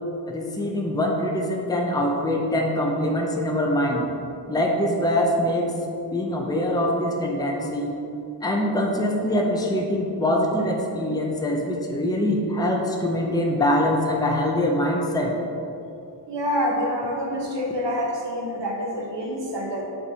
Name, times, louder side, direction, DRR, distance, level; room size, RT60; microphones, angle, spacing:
voice 1, 0.3-4.1 4.5-5.7 6.1-7.9 8.4-15.3, left 1 dB, 10° left, 0 dB, 0.7 m, -23 dB
voice 2, 16.3-19.8, equal, 85° right, -1 dB, 1.2 m, -27 dB
7.8 x 3.3 x 5.6 m, 2.7 s
wide cardioid pair, 100°, 41 cm